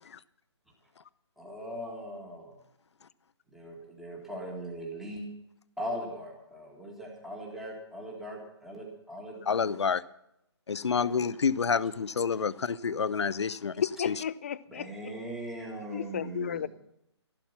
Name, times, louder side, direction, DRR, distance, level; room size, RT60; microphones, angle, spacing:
voice 1, 1.4-2.6 3.5-5.3 5.8-9.4 9.7-9.8 10.9-11.1 14.7-16.7, equal, ahead, 1.9 m, -40 dB
voice 2, 9.5-10.0 10.7-14.1, left 6 dB, 70° left, 0.7 m, -28 dB
voice 3, 13.8-14.9 15.9-16.7, left 8 dB, 30° left, 0.4 m, -33 dB
13.5 x 12.0 x 5.8 m
hypercardioid pair, 160°, 15 cm